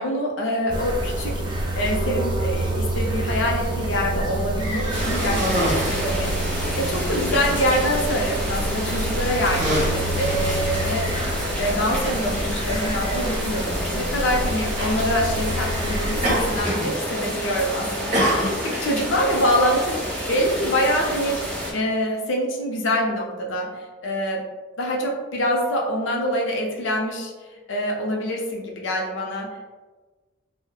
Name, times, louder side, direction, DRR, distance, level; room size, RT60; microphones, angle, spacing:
voice 1, 0.0-11.1 11.6-18.5 18.8-20.0 20.3-21.4 21.7-24.4 24.8-27.3 27.7-29.7, equal, 70° left, -1 dB, 0.5 m, -25 dB
sound 1, 0.7-16.6, right 1 dB, 20° right, 0.3 m, -27 dB
Cough, 4.6-6.2 6.9-7.1 7.4-7.9 8.7-8.9 9.3-11.3 12.2-12.3 14.1-14.4 14.8-15.0 16.2-16.9 17.2-17.6 18.1-18.9, equal, 40° right, 0.8 m, -27 dB
sound 2, 4.9-21.7, equal, 5° left, 0.8 m, -29 dB
2.8 x 2.1 x 2.2 m, 1.3 s
head